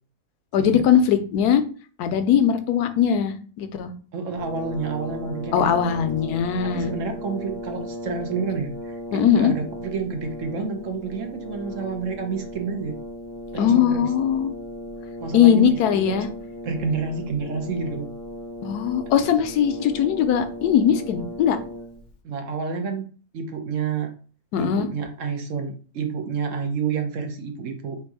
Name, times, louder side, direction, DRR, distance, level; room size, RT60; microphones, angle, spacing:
voice 1, 0.5-1.6 2.0-3.9 5.5-6.9 9.1-9.5 13.6-14.5 15.3-16.3 18.6-21.6 24.5-24.9, left 8 dB, 85° left, 9 dB, 1.2 m, -20 dB
voice 2, 4.1-5.8 6.6-12.9 13.5-14.1 15.2-16.2 16.6-18.1 22.2-23.1 23.3-24.1 24.6-28.0, right 5 dB, 60° right, 5 dB, 1.0 m, -29 dB
Brass instrument, 4.4-22.2, left 1 dB, 40° left, 0.7 m, -37 dB
3.5 x 2.9 x 4.7 m, 0.39 s
omnidirectional pair, 1.6 m